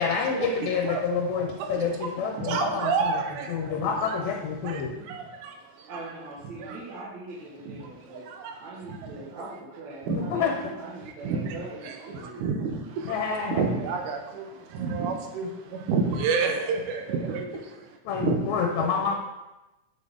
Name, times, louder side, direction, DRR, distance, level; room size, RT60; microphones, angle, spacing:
voice 1, 0.0-3.2 3.5-5.0 10.1-10.5 13.1-13.7 18.1-19.2, left 6 dB, 70° left, 1 dB, 2.0 m, -28 dB
voice 2, 2.4-3.8 4.1-4.2 4.6-5.9 6.6-6.8 7.8-8.6 8.9-9.2 10.1-10.5 11.0-13.2 13.5-18.5 18.8-18.9, right 5 dB, 80° right, 3 dB, 2.3 m, -30 dB
voice 3, 5.9-8.2 8.6-12.4, right 2 dB, 65° right, -6 dB, 2.7 m, -41 dB
7.9 x 6.7 x 3.6 m, 1.0 s
omnidirectional pair, 3.5 m